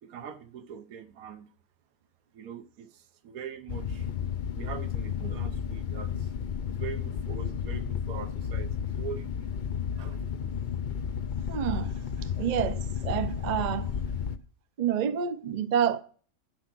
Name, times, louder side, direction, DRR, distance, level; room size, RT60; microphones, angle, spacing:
voice 1, 0.0-1.5 2.3-4.1 4.5-6.3 6.7-9.5 9.9-10.2 10.7-10.8, right 8 dB, 80° right, 1.3 m, -42 dB
sound 1, 3.7-14.4, left 8 dB, 70° left, 0.4 m, -32 dB
voice 2, 11.5-11.9 12.4-13.9 14.8-16.0, right 8 dB, 45° right, 0.6 m, -28 dB
11.0 x 4.9 x 6.0 m
omnidirectional pair, 1.5 m